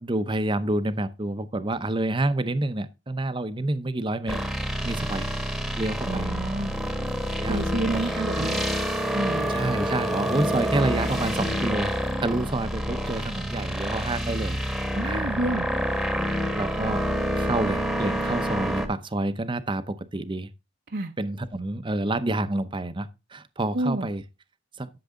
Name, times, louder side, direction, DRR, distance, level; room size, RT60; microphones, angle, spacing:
voice 1, 0.0-4.4 4.8-5.3 5.8-6.3 7.4-8.0 8.4-8.6 9.5-11.9 12.2-14.6 15.0-15.8 16.6-17.1 17.3-20.5 21.2-24.2 24.8-24.9, right 2 dB, 25° right, 0.7 m, -28 dB
sound 1, 4.3-18.9, equal, ahead, 1.3 m, -28 dB
voice 2, 6.1-6.8 7.5-8.6 9.1-9.5 14.9-15.7 20.9-21.1 23.7-24.1, right 2 dB, 60° right, 0.8 m, -29 dB
12.0 x 6.9 x 3.7 m
head